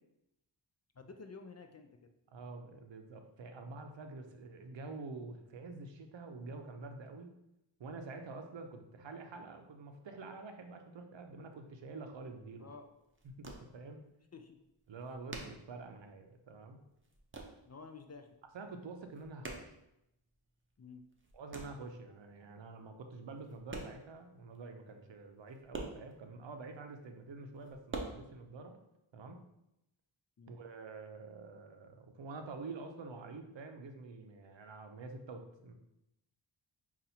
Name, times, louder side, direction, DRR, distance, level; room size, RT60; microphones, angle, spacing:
voice 1, 1.0-1.9 12.6-12.9 14.3-14.6 17.7-18.3 20.8-21.0 30.4-30.6, left 4 dB, 35° left, 6 dB, 0.4 m, -51 dB
voice 2, 2.3-7.3 7.8-12.7 13.4-14.0 14.9-16.8 18.5-19.8 21.3-28.8 29.1-29.4 30.5-35.7, right 3 dB, 70° right, 5 dB, 0.6 m, -47 dB
sound 1, 12.8-14.0 14.3-14.4 14.6-16.4 16.7-17.7 18.0-18.5 18.8-20.5 20.9-21.9 22.7-22.8 23.3-24.3 24.5-24.6 24.9-25.0 25.2-26.7 27.2-28.0, right 3 dB, 25° right, 0.6 m, -46 dB
5.5 x 2.5 x 2.7 m, 0.85 s
wide cardioid pair, 50°, 47 cm